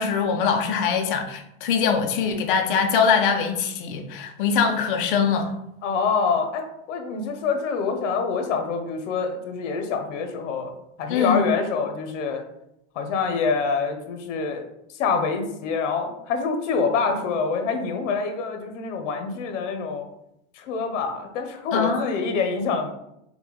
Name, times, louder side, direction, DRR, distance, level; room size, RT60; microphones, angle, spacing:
voice 1, 0.0-5.5 11.1-11.5 21.7-22.2, left 6 dB, 45° left, 5 dB, 0.6 m, -22 dB
voice 2, 5.8-10.7 11.0-12.4 12.9-14.6 15.0-20.1 20.5-22.9, left 5 dB, 85° left, 6 dB, 0.8 m, -26 dB
5.3 x 2.2 x 3.0 m, 0.81 s
supercardioid pair, 175°, 36 cm